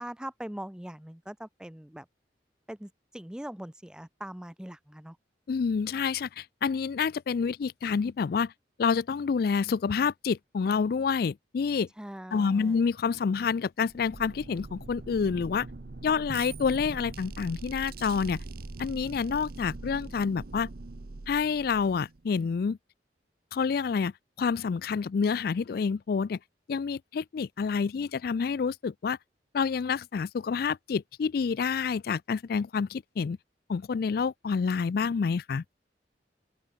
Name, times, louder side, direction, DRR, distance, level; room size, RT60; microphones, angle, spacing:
voice 1, 0.0-2.1 2.7-5.2 12.0-12.8, right 1 dB, 5° right, 0.5 m, -41 dB
voice 2, 5.5-8.5 8.8-11.9 12.3-15.7 16.0-18.4 18.8-20.7 21.3-22.8 23.5-24.1 24.4-26.4 26.7-29.2 29.5-33.4 33.7-35.6, left 5 dB, 60° left, 0.4 m, -28 dB
sound 1, 13.8-22.3, right 2 dB, 60° right, 0.8 m, -42 dB
open air
head